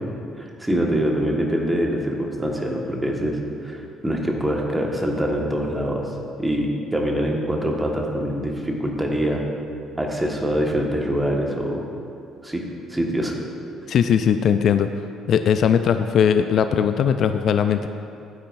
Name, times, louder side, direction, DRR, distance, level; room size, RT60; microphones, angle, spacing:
voice 1, 0.4-3.4 3.6-6.1 6.4-9.4 10.0-11.8 12.4-12.6 12.9-13.3, equal, 10° right, 0 dB, 1.6 m, -24 dB
voice 2, 13.9-14.9 15.3-17.9, left 8 dB, 55° left, 9 dB, 0.3 m, -19 dB
12.0 x 9.1 x 2.6 m, 2.6 s
figure-of-eight pair, 50°, 0 cm